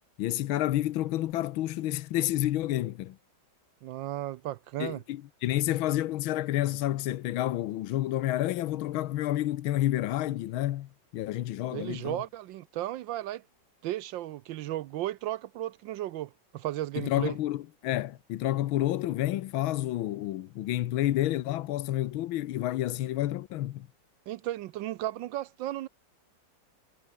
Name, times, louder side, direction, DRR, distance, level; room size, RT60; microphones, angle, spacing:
voice 1, 0.2-3.2 4.8-12.2 17.0-23.9, left 14 dB, 90° left, 1.6 m, -29 dB
voice 2, 3.8-5.0 11.7-13.4 13.8-17.4 24.3-25.9, right 14 dB, 75° right, 1.3 m, -35 dB
omnidirectional pair, 2.2 m